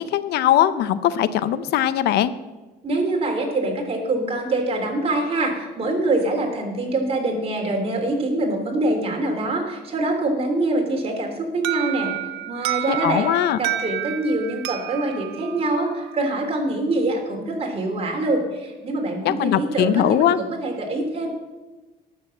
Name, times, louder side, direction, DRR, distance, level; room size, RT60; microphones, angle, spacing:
voice 1, 0.0-2.3 12.9-13.6 19.2-20.4, left 11 dB, 75° left, 15 dB, 0.6 m, -20 dB
voice 2, 2.8-12.1 12.5-13.3 13.6-21.3, right 2 dB, 35° right, 1 dB, 3.1 m, -24 dB
Alarm, 11.6-16.4, right 14 dB, 90° right, 0.7 m, -30 dB
11.5 x 6.9 x 7.7 m, 1.2 s
cardioid pair, 110°, 17 cm